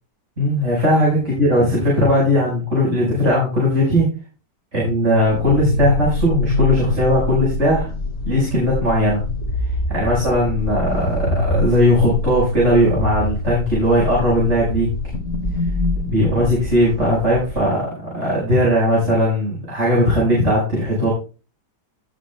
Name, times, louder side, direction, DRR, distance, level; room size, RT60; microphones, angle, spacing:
voice 1, 0.4-4.1 4.7-7.9 8.2-9.2 9.9-14.9 16.0-21.1, equal, 40° right, -5 dB, 5.9 m, -18 dB
sound 1, 5.2-17.6, left 2 dB, 35° left, 2.1 m, -24 dB
19.0 x 7.7 x 2.3 m, 0.32 s
omnidirectional pair, 1.9 m